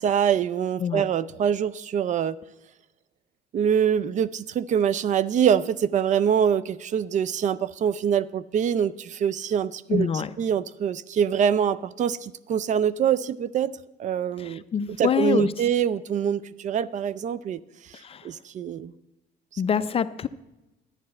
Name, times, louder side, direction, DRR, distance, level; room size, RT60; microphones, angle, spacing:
voice 1, 0.0-2.4 3.5-14.6 15.0-17.6 18.2-18.9 19.5-19.6, right 8 dB, 45° right, 18 dB, 0.4 m, -24 dB
voice 2, 9.9-10.3 14.4-15.5 18.0-18.3 19.6-20.3, left 7 dB, 35° left, 14 dB, 0.5 m, -25 dB
11.5 x 9.6 x 4.3 m, 1.0 s
cardioid pair, 110°, 17 cm